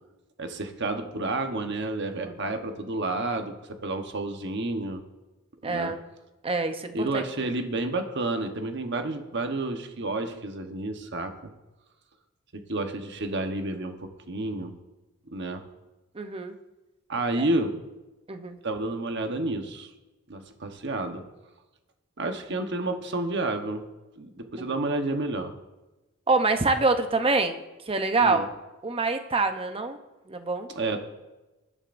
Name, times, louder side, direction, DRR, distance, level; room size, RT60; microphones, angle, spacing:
voice 1, 0.4-5.0 5.6-5.9 6.9-11.5 12.5-14.7 15.3-15.6 17.1-17.8 18.6-19.9 20.3-21.2 22.2-23.8 24.2-25.5 28.2-28.4 30.7-31.0, right 2 dB, 55° right, 6 dB, 1.1 m, -30 dB
voice 2, 5.6-6.0 6.4-7.2 16.1-16.5 17.4-17.5 18.3-18.6 24.6-24.8 26.3-28.5 28.8-30.0 30.3-30.7, right 3 dB, 25° right, 7 dB, 0.8 m, -26 dB
19.5 x 11.0 x 2.6 m, 1.1 s
head